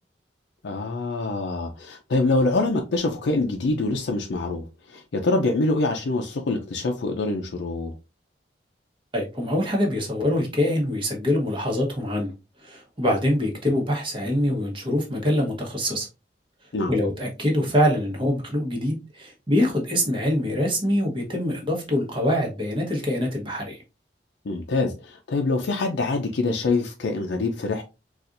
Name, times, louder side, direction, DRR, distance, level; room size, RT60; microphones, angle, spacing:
voice 1, 0.6-7.9 16.7-16.9 24.4-27.8, left 2 dB, 75° left, 0.5 m, -25 dB
voice 2, 9.1-12.3 12.6-16.1 16.9-23.8, left 1 dB, 30° right, 1.1 m, -24 dB
4.2 x 2.4 x 2.5 m
head